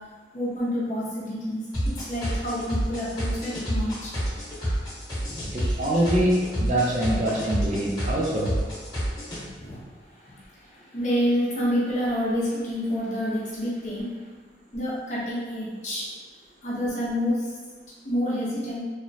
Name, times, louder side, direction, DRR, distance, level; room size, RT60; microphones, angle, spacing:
voice 1, 0.3-4.1 5.2-5.6 9.3-9.8 10.2-14.1 14.7-16.0 16.6-17.5 18.0-18.8, equal, 40° left, -7 dB, 0.7 m, -28 dB
sound 1, 1.7-9.4, equal, 20° left, 1.1 m, -29 dB
voice 2, 5.5-8.6, right 1 dB, 40° right, -4 dB, 0.4 m, -24 dB
3.0 x 2.0 x 2.6 m, 1.4 s
head